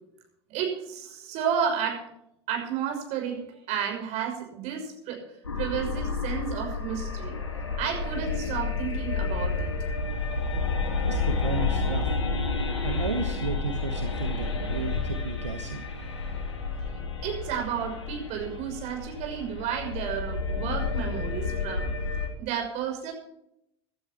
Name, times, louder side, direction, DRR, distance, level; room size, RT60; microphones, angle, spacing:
voice 1, 0.5-2.0 2.5-5.2 5.6-7.4 7.8-9.7 17.2-21.9 22.4-23.1, right 8 dB, 50° right, 3 dB, 6.0 m, -32 dB
sound 1, 5.4-22.3, left 4 dB, 80° left, 3.5 m, -30 dB
voice 2, 11.1-12.4 12.8-15.9, right 4 dB, 80° right, 6 dB, 1.3 m, -33 dB
17.0 x 12.5 x 4.5 m, 0.76 s
figure-of-eight pair, 75°, 15 cm